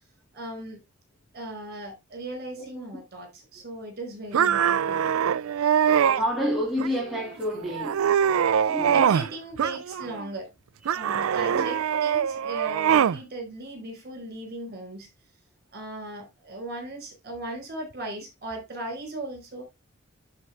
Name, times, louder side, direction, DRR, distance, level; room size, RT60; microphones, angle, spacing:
voice 1, 0.3-0.8 1.3-5.1 8.6-10.5 10.9-15.1 15.7-19.6, right 1 dB, 50° right, 4.8 m, -37 dB
voice 2, 2.5-3.0 5.8-8.1 8.6-9.1 10.9-11.2 11.5-11.7, equal, ahead, 2.2 m, -30 dB
sound 1, 4.3-6.2 6.8-7.3 7.7-9.3 9.6-10.3 10.9-13.2, right 8 dB, 80° right, 0.4 m, -23 dB
11.5 x 4.7 x 3.4 m
head